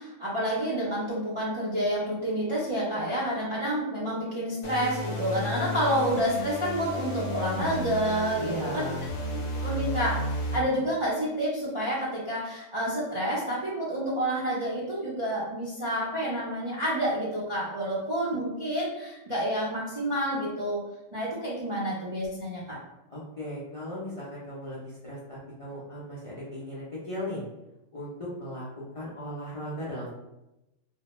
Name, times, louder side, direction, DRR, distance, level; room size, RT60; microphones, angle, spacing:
voice 1, 0.0-8.8 9.6-10.2 10.5-20.8 21.1-22.8, equal, 50° right, -9 dB, 0.3 m, -29 dB
sound 1, 4.6-10.6, equal, 75° left, 0.9 m, -33 dB
voice 2, 8.3-9.0 23.1-27.4 27.9-30.1, left 1 dB, 55° left, -8 dB, 0.3 m, -37 dB
2.1 x 2.1 x 2.9 m, 0.93 s
omnidirectional pair, 1.3 m